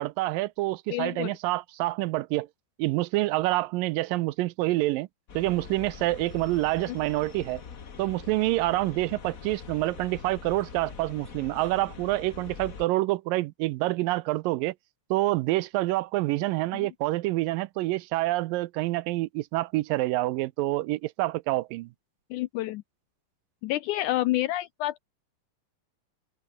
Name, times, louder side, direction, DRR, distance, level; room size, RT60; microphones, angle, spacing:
voice 1, 0.0-2.5 2.8-5.1 5.4-7.6 8.0-14.7 15.1-21.9, right 18 dB, 80° right, 2.3 m, -27 dB
voice 2, 0.9-1.3 6.9-7.0 16.7-16.9 22.3-22.8 23.6-25.0, left 15 dB, 80° left, 1.8 m, -29 dB
sound 1, 5.3-12.8, left 6 dB, 65° left, 0.8 m, -43 dB
open air
omnidirectional pair, 4.1 m